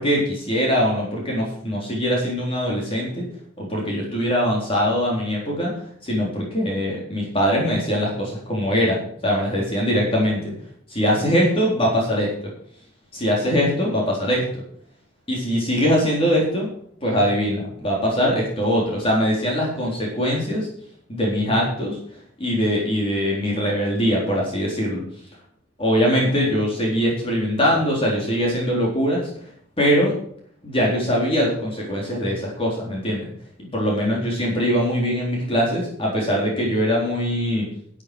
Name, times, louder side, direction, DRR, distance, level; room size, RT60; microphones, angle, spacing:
voice 1, 0.0-3.2 3.6-10.5 10.9-12.3 13.1-14.4 15.3-16.7 17.0-20.7 21.1-22.0 22.4-25.0 25.8-29.3 29.8-30.1 30.6-33.3 33.7-37.7, equal, 30° left, -3 dB, 3.9 m, -22 dB
11.5 x 8.7 x 6.3 m, 0.63 s
head